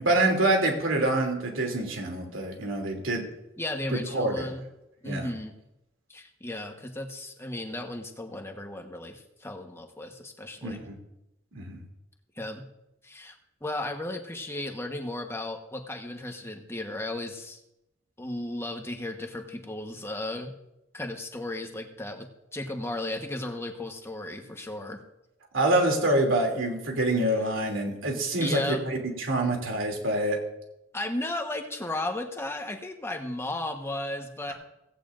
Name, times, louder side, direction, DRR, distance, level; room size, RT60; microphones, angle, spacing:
voice 1, 0.0-3.2 4.1-4.5 5.0-5.3 10.6-11.0 11.5-11.8 25.5-30.4, right 1 dB, 90° right, 2 dB, 2.9 m, -26 dB
voice 2, 3.6-4.6 5.0-5.5 6.1-10.8 12.4-12.6 13.0-13.4 13.6-17.6 18.2-20.5 20.9-25.0 28.4-28.8 30.9-34.5, left 1 dB, 15° left, 4 dB, 1.2 m, -35 dB
16.5 x 16.0 x 2.6 m, 0.89 s
head